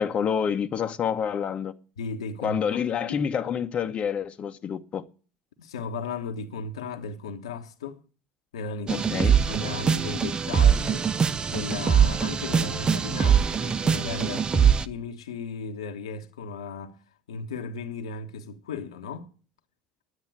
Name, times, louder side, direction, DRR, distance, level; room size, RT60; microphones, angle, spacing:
voice 1, 0.0-1.7 2.4-5.0 8.9-9.4, left 7 dB, 40° left, 1.0 m, -28 dB
voice 2, 2.0-3.2 5.6-8.0 8.5-11.1 11.5-17.0 17.3-19.3, left 4 dB, 75° left, 1.2 m, -36 dB
sound 1, 8.9-14.8, right 7 dB, 30° right, 0.7 m, -22 dB
9.8 x 9.4 x 9.2 m
figure-of-eight pair, 65°, 3 cm